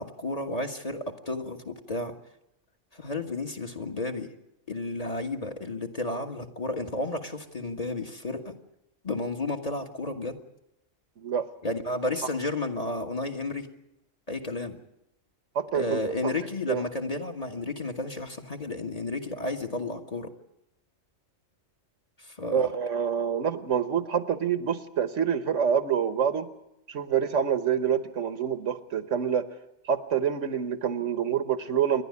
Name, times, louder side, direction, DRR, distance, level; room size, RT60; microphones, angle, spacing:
voice 1, 0.0-2.2 2.9-4.3 4.7-8.5 9.0-10.4 11.6-13.7 14.3-14.8 15.7-20.3 22.2-22.7, left 2 dB, 30° left, 5 dB, 1.6 m, -32 dB
voice 2, 11.2-11.5 15.5-16.3 16.7-16.8 22.5-26.5 26.9-29.5 29.9-32.0, right 8 dB, 70° right, 11 dB, 1.4 m, -27 dB
28.5 x 11.5 x 9.7 m, 0.87 s
omnidirectional pair, 1.3 m